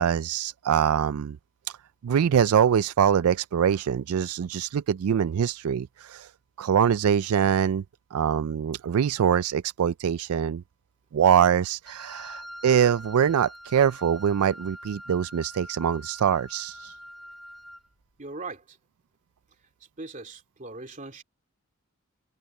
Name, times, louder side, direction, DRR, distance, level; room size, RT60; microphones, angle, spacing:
voice 1, 0.0-1.4 2.0-6.3 6.6-7.8 8.1-10.6 11.1-16.9, right 8 dB, 80° right, 0.4 m, -23 dB
Wind instrument woodwind instrument, 11.9-17.9, equal, ahead, 4.1 m, -44 dB
voice 2, 18.2-18.8 20.0-21.2, right 3 dB, 35° right, 2.8 m, -39 dB
head